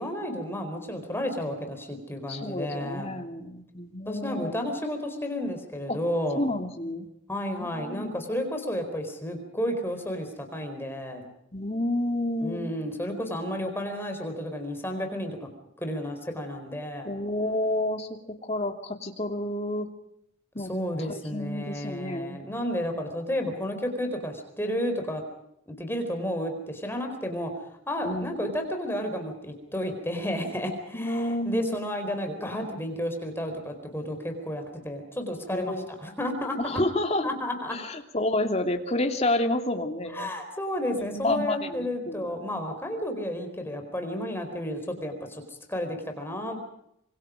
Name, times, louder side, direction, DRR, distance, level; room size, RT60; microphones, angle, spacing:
voice 1, 0.0-3.1 4.1-6.5 7.3-11.3 12.4-15.5 15.8-17.1 20.7-25.2 25.7-27.5 27.9-36.8 37.2-37.8 40.1-45.4 45.7-46.7, equal, 10° left, 4 dB, 4.3 m, -32 dB
voice 2, 2.3-4.5 5.9-6.0 6.3-7.1 7.6-8.1 11.5-12.7 17.0-19.9 20.5-20.7 21.0-22.4 28.0-28.3 30.9-31.8 35.5-35.9 36.6-37.3 37.7-40.3 41.0-42.3, left 1 dB, 30° left, 5 dB, 2.7 m, -29 dB
26.5 x 24.5 x 5.1 m, 0.78 s
head